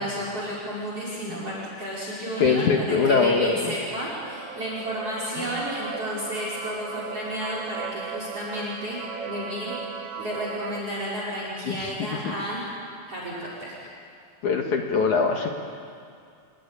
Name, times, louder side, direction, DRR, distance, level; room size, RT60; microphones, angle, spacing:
voice 1, 0.0-9.0 9.3-9.8 10.2-12.7 13.1-13.8, equal, 30° right, -4 dB, 5.7 m, -32 dB
sound 1, 1.6-10.8, right 6 dB, 70° right, 1.4 m, -38 dB
voice 2, 2.4-3.7 5.4-5.6 11.7-11.9 12.3-12.4 14.4-15.5, left 5 dB, 60° left, 2 dB, 2.2 m, -23 dB
29.0 x 20.5 x 9.9 m, 2.3 s
omnidirectional pair, 5.3 m